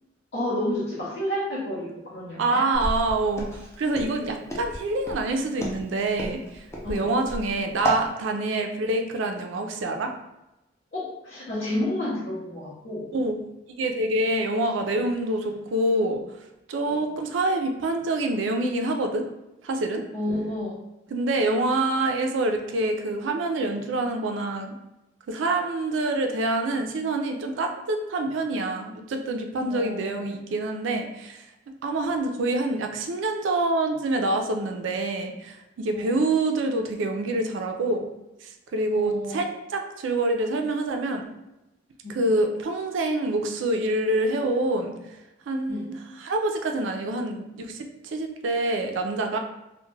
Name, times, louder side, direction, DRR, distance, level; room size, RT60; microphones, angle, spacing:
voice 1, 0.3-2.6 6.8-7.1 10.9-13.1 16.9-17.0 20.1-20.8 29.7-30.3 35.9-36.2 38.9-39.4 42.0-42.2 45.7-45.9, left 1 dB, 65° left, -9 dB, 0.8 m, -30 dB
voice 2, 2.4-3.5 3.8-10.1 13.1-13.4 13.6-16.2 16.7-19.2 19.6-20.0 21.1-24.8 25.3-31.4 31.8-38.1 38.4-41.3 42.1-44.9 45.5-49.4, right 2 dB, 70° right, 4 dB, 0.4 m, -26 dB
Walk footsteps, 2.7-8.1, right 1 dB, 15° left, 0.4 m, -31 dB
2.2 x 2.1 x 3.1 m, 0.93 s
head